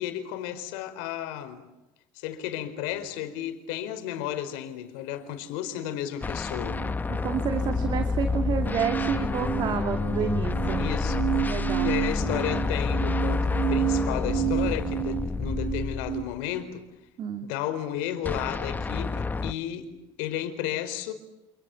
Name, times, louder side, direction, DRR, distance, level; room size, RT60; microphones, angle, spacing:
voice 1, 0.0-1.7 2.1-6.8 10.2-10.3 10.8-11.3 11.8-16.9 17.4-19.9 20.2-21.1, left 11 dB, 85° left, 4.5 m, -33 dB
sound 1, 6.2-16.5 18.2-19.5, left 4 dB, 15° left, 1.1 m, -29 dB
sound 2, 6.6-16.2, right 13 dB, 70° right, 5.1 m, -31 dB
voice 2, 7.1-10.8 11.5-11.9 17.2-17.5, right 8 dB, 45° right, 2.5 m, -30 dB
29.5 x 28.0 x 7.2 m
cardioid pair, 125°, 11 cm